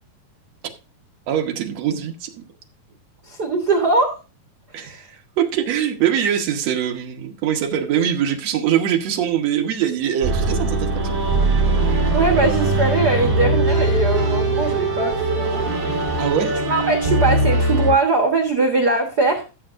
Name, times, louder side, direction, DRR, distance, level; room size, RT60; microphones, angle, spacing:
voice 1, 1.3-2.4 4.7-11.2 16.2-16.5, right 9 dB, 60° right, 2.0 m, -23 dB
voice 2, 3.3-4.2 4.8-5.0 12.1-15.6 16.6-19.4, right 3 dB, 85° right, 0.8 m, -21 dB
sound 1, 10.2-17.9, right 2 dB, 30° right, 1.9 m, -20 dB
16.0 x 7.2 x 2.5 m
omnidirectional pair, 4.0 m